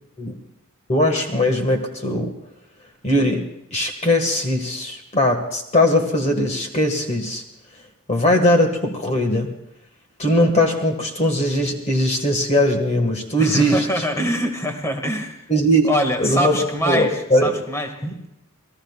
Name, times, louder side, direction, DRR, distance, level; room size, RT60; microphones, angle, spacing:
voice 1, 0.9-2.3 3.0-7.4 8.1-9.5 10.2-14.0 15.5-15.9 16.2-17.6 18.0-18.1, left 1 dB, 30° left, 3 dB, 1.8 m, -20 dB
voice 2, 13.4-15.5 15.8-17.9, equal, 15° left, 3 dB, 2.0 m, -24 dB
29.0 x 20.0 x 2.4 m, 0.84 s
head